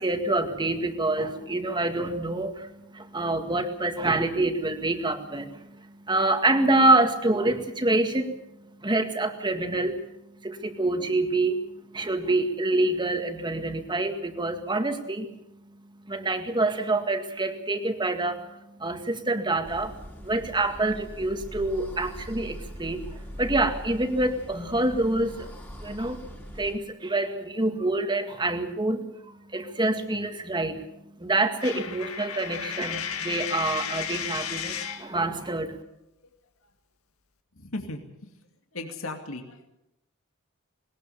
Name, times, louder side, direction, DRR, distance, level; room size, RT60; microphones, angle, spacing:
voice 1, 0.0-8.4 8.8-10.1 10.4-11.7 11.9-15.3 16.1-25.5 25.8-26.2 26.5-30.8 31.2-35.8, right 2 dB, 20° right, 6 dB, 2.0 m, -26 dB
sound 1, 19.6-26.8, equal, 10° left, 3.1 m, -41 dB
Coin (dropping), 31.6-35.1, left 8 dB, 90° left, 1.8 m, -33 dB
voice 2, 37.5-38.3 38.7-39.8, left 2 dB, 70° left, 4 dB, 2.4 m, -37 dB
20.5 x 19.5 x 7.1 m, 0.86 s
head